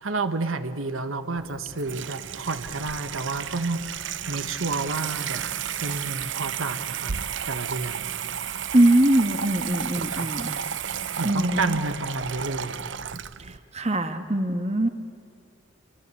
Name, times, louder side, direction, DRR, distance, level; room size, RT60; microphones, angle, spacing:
voice 1, 0.0-5.4 5.8-7.1 7.5-8.1 10.1-10.3 11.2-12.8, right 3 dB, 75° right, 10 dB, 1.3 m, -30 dB
Water tap faucet / Sink (filling or washing), 1.4-13.6, right 8 dB, 60° right, 0.7 m, -32 dB
voice 2, 8.7-10.5 11.2-11.8 13.4-14.9, right 1 dB, 30° right, 8 dB, 1.4 m, -22 dB
29.0 x 24.0 x 8.4 m, 2.6 s
head